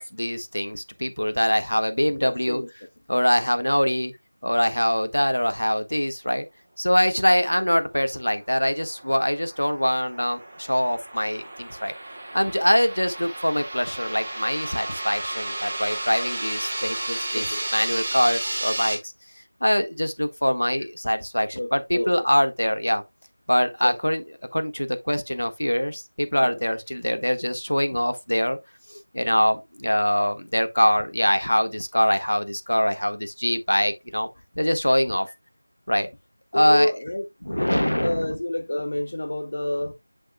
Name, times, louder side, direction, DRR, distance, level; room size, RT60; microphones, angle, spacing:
voice 1, 0.0-2.6 3.1-4.1 4.4-6.4 6.8-11.9 12.3-19.1 19.6-23.0 23.5-24.2 24.5-28.6 28.9-34.3 34.5-35.3 35.9-36.1 36.5-36.9 37.4-38.4, equal, 90° left, 1.6 m, -23 dB
voice 2, 2.2-2.7 17.3-17.6 21.5-22.1 23.8-23.9 26.4-26.6 36.5-37.3 37.6-39.9, left 1 dB, 45° left, 0.8 m, -28 dB
sound 1, 8.6-18.9, right 2 dB, 15° right, 1.6 m, -33 dB
8.2 x 6.5 x 2.2 m
figure-of-eight pair, 175°, 0 cm